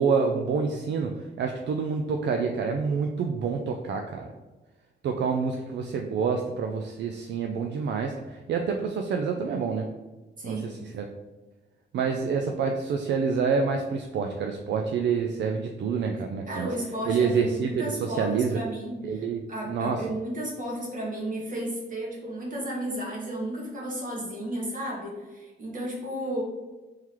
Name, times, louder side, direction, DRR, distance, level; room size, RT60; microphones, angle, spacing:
voice 1, 0.0-4.3 5.0-9.9 10.4-11.1 11.9-16.7 17.1-18.6 19.0-20.0, right 5 dB, 70° right, 3 dB, 0.4 m, -27 dB
voice 2, 10.4-10.7 16.5-26.4, right 1 dB, 45° right, -3 dB, 1.4 m, -33 dB
3.7 x 3.2 x 2.9 m, 1.2 s
cardioid pair, 105°, 19 cm